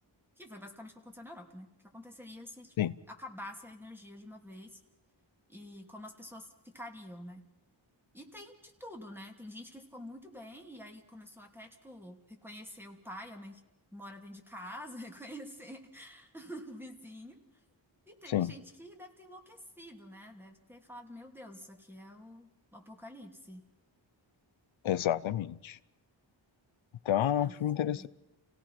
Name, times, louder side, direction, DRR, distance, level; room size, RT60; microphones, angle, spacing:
voice 1, 0.4-2.7 3.1-4.8 5.5-7.4 8.1-13.6 13.9-17.6 18.1-23.6 27.4-27.6 27.8-28.1, left 1 dB, 5° right, 3 dB, 3.0 m, -48 dB
voice 2, 24.8-25.8 27.0-28.1, left 11 dB, 85° left, 16 dB, 0.7 m, -29 dB
29.5 x 17.5 x 5.8 m, 0.93 s
wide cardioid pair, 75°, 46 cm